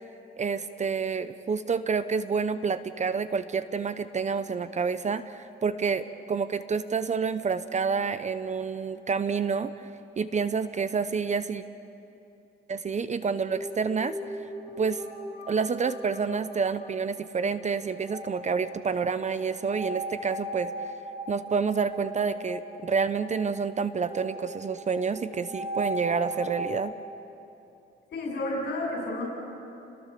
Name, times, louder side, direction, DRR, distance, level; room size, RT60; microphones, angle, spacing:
voice 1, 0.4-9.9 10.2-11.6 12.7-14.1 14.8-15.0 15.5-20.9 21.3-26.9, right 5 dB, 35° right, 13 dB, 0.9 m, -28 dB
sound 1, 13.5-26.7, right 1 dB, 15° right, 5.2 m, -39 dB
voice 2, 28.1-29.2, left 1 dB, 60° left, -1 dB, 6.1 m, -31 dB
29.5 x 20.0 x 6.8 m, 2.8 s
cardioid pair, 90°, 20 cm